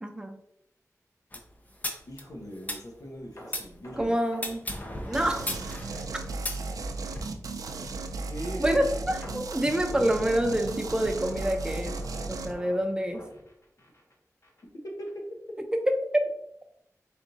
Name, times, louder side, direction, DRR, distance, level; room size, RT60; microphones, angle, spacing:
voice 1, 0.0-0.4 4.0-4.6 5.0-5.5 8.6-12.0 12.3-13.2 16.1-16.3, right 1 dB, 15° right, 5 dB, 0.6 m, -27 dB
sound 1, 1.3-3.7 4.3-7.2, left 1 dB, 25° left, 0.6 m, -36 dB
voice 2, 2.1-4.2 8.3-8.8 14.8-15.2, equal, 80° left, -1 dB, 1.1 m, -39 dB
sound 2, 3.4-6.4 6.7-6.9 7.4-7.5 9.2-14.1 14.4-14.6 15.1-15.2, equal, 50° left, 1.1 m, -46 dB
sound 3, 5.1-12.5, right 3 dB, 90° right, 0.4 m, -35 dB
4.1 x 3.5 x 2.7 m, 0.75 s
wide cardioid pair, 80°, 6 cm